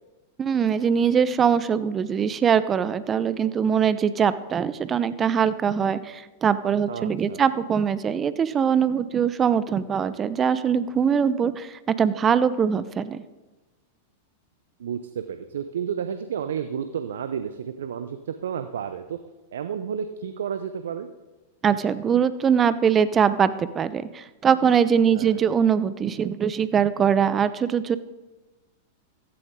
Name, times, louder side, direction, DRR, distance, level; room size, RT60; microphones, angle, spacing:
voice 1, 0.4-13.2 21.6-28.0, right 7 dB, 25° right, 15 dB, 0.8 m, -22 dB
voice 2, 6.9-7.4 14.8-19.2 19.5-21.1 25.1-25.4, right 8 dB, 70° right, 10 dB, 0.7 m, -31 dB
15.5 x 15.0 x 3.8 m, 1.2 s
hypercardioid pair, 95°, 0 cm